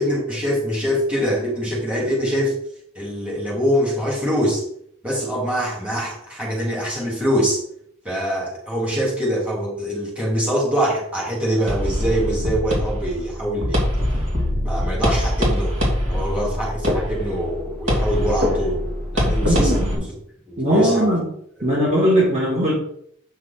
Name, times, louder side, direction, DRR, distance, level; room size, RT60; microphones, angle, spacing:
voice 1, 0.0-2.6 3.0-4.6 5.0-7.6 8.0-13.8 14.6-15.8 16.1-18.8 19.1-20.1 20.5-21.2 21.6-21.7, equal, 5° right, -5 dB, 3.4 m, -24 dB
sound 1, 11.7-19.9, equal, 70° right, 3.0 m, -23 dB
voice 2, 19.4-20.1 20.6-21.3 21.6-22.7, equal, 35° right, -4 dB, 2.1 m, -19 dB
8.8 x 5.9 x 4.5 m, 0.67 s
head